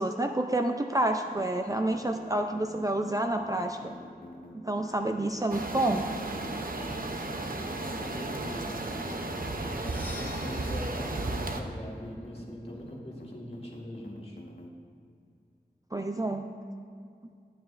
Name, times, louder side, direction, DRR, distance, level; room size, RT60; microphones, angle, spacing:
voice 1, 0.0-3.9 4.5-6.1 15.9-16.5, right 1 dB, 20° right, 4 dB, 0.4 m, -29 dB
sound 1, 1.3-14.7, left 2 dB, 60° left, 1.0 m, -47 dB
sound 2, 5.5-11.6, right 2 dB, 55° right, 0.7 m, -34 dB
voice 2, 8.0-9.1 9.6-14.4, equal, 35° left, -2 dB, 1.8 m, -42 dB
Percussion, 9.7-13.5, left 1 dB, 10° left, 1.2 m, -48 dB
12.0 x 9.3 x 2.5 m, 2.2 s
wide cardioid pair, 55°, 17 cm